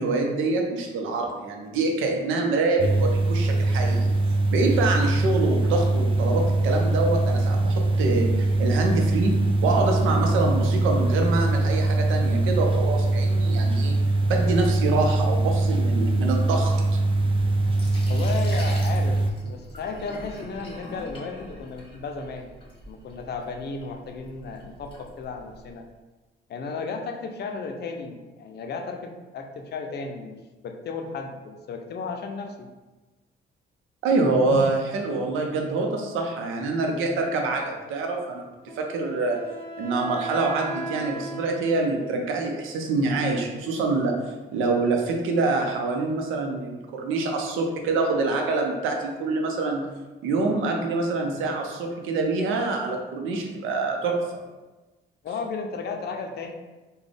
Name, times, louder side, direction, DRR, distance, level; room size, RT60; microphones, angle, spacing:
voice 1, 0.0-4.1 4.5-9.4 9.6-16.7 34.0-38.4 38.8-39.4 39.8-44.2 44.5-49.8 50.2-54.2, right 3 dB, 90° right, 2 dB, 0.6 m, -25 dB
sound 1, 2.8-19.3, right 2 dB, 25° right, 0.3 m, -22 dB
Sink (filling or washing), 17.0-25.8, left 1 dB, 25° left, 1.1 m, -44 dB
voice 2, 18.1-22.5 22.9-25.9 26.5-32.7 34.4-34.7 55.2-56.5, left 4 dB, 55° left, 4 dB, 0.5 m, -34 dB
Wind instrument woodwind instrument, 38.7-42.3, right 2 dB, 10° right, 1.3 m, -37 dB
3.9 x 2.2 x 3.4 m, 1.2 s
cardioid pair, 90°, 20 cm